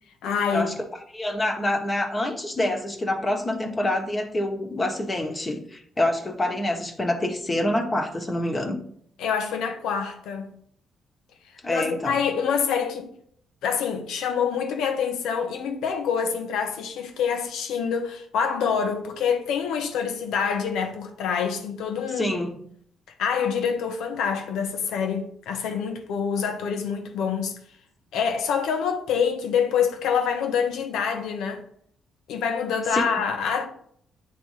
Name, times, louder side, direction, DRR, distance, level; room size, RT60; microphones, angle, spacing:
voice 1, 0.2-0.7 9.2-10.6 11.7-13.1 13.6-22.3 23.2-27.6 28.1-31.6 32.3-33.7, left 6 dB, 85° left, 0.9 m, -26 dB
voice 2, 1.1-8.8 11.6-12.2 22.2-22.6 32.9-33.2, left 1 dB, 25° left, 1.2 m, -26 dB
9.1 x 3.3 x 3.2 m
cardioid pair, 90°, 0 cm